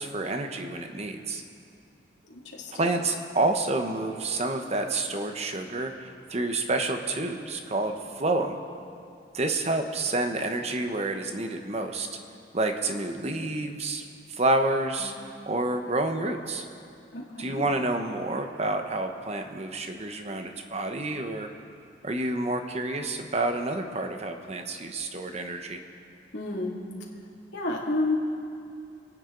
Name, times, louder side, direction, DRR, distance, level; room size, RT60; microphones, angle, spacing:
voice 1, 0.0-1.4 2.7-8.6 9.3-12.1 12.5-14.0 14.4-15.1 15.5-16.6 17.4-21.5 22.0-25.8, right 2 dB, 35° right, 5 dB, 1.0 m, -29 dB
voice 2, 2.2-2.9 15.0-15.3 17.1-17.6 26.3-26.8 27.5-28.2, left 2 dB, 80° left, -3 dB, 2.6 m, -31 dB
27.5 x 9.7 x 3.9 m, 2.5 s
head